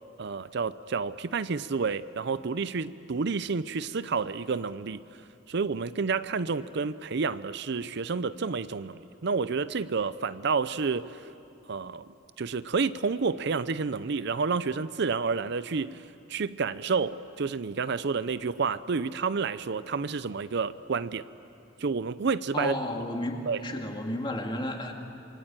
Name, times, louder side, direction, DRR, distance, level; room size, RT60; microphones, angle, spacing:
voice 1, 0.2-5.0 5.5-11.2 11.7-16.0 16.3-21.3 21.8-22.8 23.5-23.6, right 5 dB, 60° right, 15 dB, 0.6 m, -30 dB
voice 2, 22.5-24.9, left 1 dB, 25° left, 3 dB, 2.3 m, -32 dB
27.5 x 23.0 x 9.0 m, 2.7 s
head